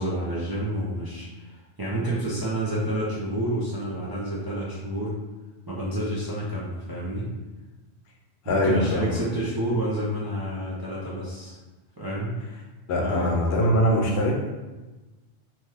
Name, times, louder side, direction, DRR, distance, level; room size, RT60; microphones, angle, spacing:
voice 1, 0.0-5.2 5.7-7.3 8.4-11.6 12.0-12.4 12.9-13.4, right 1 dB, 35° right, -8 dB, 0.4 m, -29 dB
voice 2, 8.5-9.1 12.9-14.5, equal, 70° left, 0 dB, 0.8 m, -22 dB
2.9 x 2.2 x 3.3 m, 1.1 s
omnidirectional pair, 1.1 m